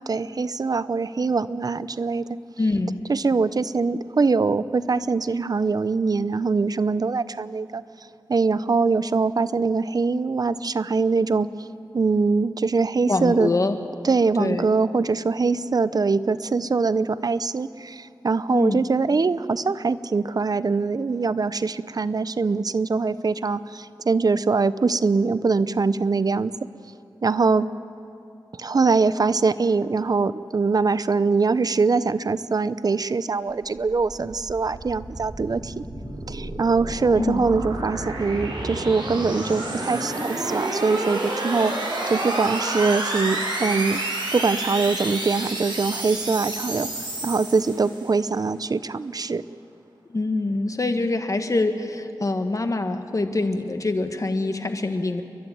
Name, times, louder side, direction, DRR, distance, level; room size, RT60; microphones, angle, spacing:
voice 1, 0.0-2.2 3.1-7.8 8.3-11.5 11.9-13.5 14.0-26.5 27.2-27.7 28.6-35.8 36.3-41.7 42.1-44.0 44.3-49.4, right 4 dB, 55° right, 15 dB, 0.6 m, -23 dB
voice 2, 2.6-3.0 13.1-13.8 14.4-14.6 18.5-18.8 37.2-37.4 50.1-55.2, left 2 dB, 45° left, 7 dB, 1.6 m, -24 dB
sound 1, 33.6-48.2, right 2 dB, 70° right, 6.3 m, -30 dB
30.0 x 12.0 x 9.2 m, 2.5 s
wide cardioid pair, 65°, 8 cm